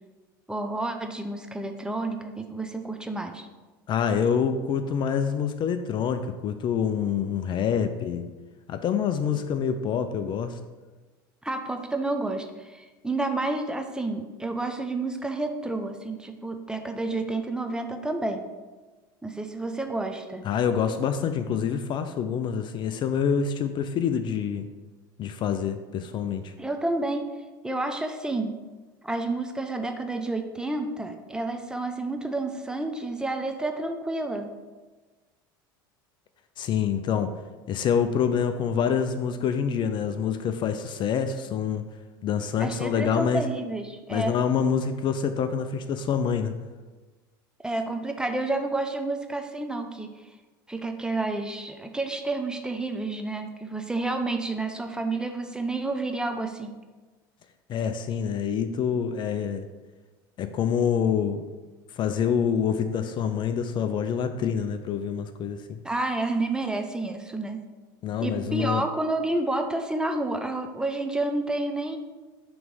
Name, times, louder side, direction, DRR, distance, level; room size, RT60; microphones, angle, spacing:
voice 1, 0.5-3.5 11.4-18.5 19.2-20.5 26.6-27.3 27.6-28.6 29.0-34.5 42.6-44.4 47.6-50.1 50.7-56.7 65.8-67.6 68.2-72.0, right 2 dB, 5° right, 5 dB, 0.6 m, -30 dB
voice 2, 3.9-8.2 8.7-10.6 20.4-24.7 25.2-26.5 36.6-37.3 37.7-41.8 42.2-43.4 44.1-46.5 57.7-59.7 60.4-61.4 61.9-65.8 68.0-68.8, left 7 dB, 45° left, 9 dB, 0.4 m, -26 dB
5.8 x 3.1 x 5.4 m, 1.2 s
hypercardioid pair, 85°, 11 cm